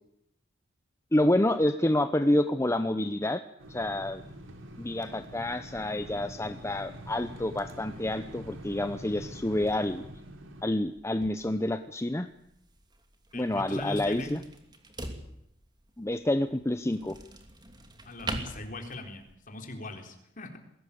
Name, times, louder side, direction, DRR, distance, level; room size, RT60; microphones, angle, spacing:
voice 1, 1.1-3.4 3.7-4.2 4.8-10.0 10.6-12.3 13.3-14.4 16.0-17.2, left 1 dB, 15° left, 9 dB, 0.8 m, -28 dB
sound 1, 3.6-10.6, equal, 85° right, 3.5 m, -45 dB
sound 2, 10.6-19.4, right 2 dB, 20° right, 2.7 m, -44 dB
voice 2, 13.3-14.3 18.0-20.6, left 2 dB, 45° left, 4 dB, 3.9 m, -40 dB
21.5 x 17.5 x 8.6 m, 0.76 s
head